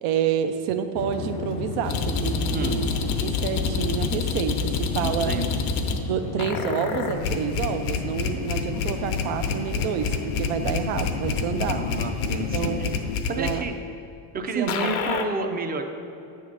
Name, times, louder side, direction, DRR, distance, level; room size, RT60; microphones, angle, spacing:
voice 1, 0.0-2.9 3.2-5.3 6.1-11.8 12.5-12.9 13.4-13.6 14.5-14.9, right 8 dB, 75° right, 8 dB, 0.6 m, -28 dB
sound 1, 1.0-13.2, left 6 dB, 45° left, 0.5 m, -33 dB
sound 2, 1.9-6.0 6.4-13.5 14.7-15.2, left 5 dB, 80° left, 0.9 m, -28 dB
voice 2, 2.5-2.8 5.0-5.6 11.7-12.9 13.3-13.8 14.3-15.8, right 3 dB, 20° right, 6 dB, 0.4 m, -30 dB
8.7 x 3.7 x 6.3 m, 2.7 s
cardioid pair, 120°, 48 cm